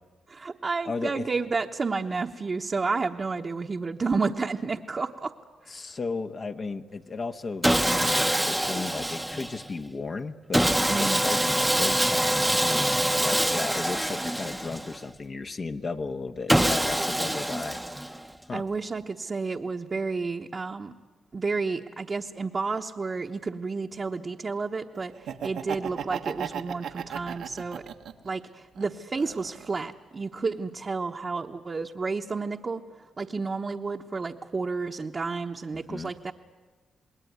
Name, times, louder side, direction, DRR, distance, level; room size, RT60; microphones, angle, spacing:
voice 1, 0.3-5.3 5.6-5.7 10.9-11.2 18.5-20.9 21.3-27.8 28.2-32.8 33.2-36.3, right 4 dB, 40° right, 0 dB, 1.1 m, -31 dB
voice 2, 0.8-1.3 5.7-17.8 18.5-18.6 35.7-36.1, left 4 dB, 45° left, 6 dB, 1.2 m, -35 dB
Sawing, 7.6-9.7 10.5-15.1 16.5-18.3, right 1 dB, 5° right, 0.9 m, -25 dB
Laughter, 25.1-28.3 28.7-29.9, right 8 dB, 80° right, 1.3 m, -35 dB
28.0 x 20.0 x 9.5 m, 1.4 s
cardioid pair, 75°, 0 cm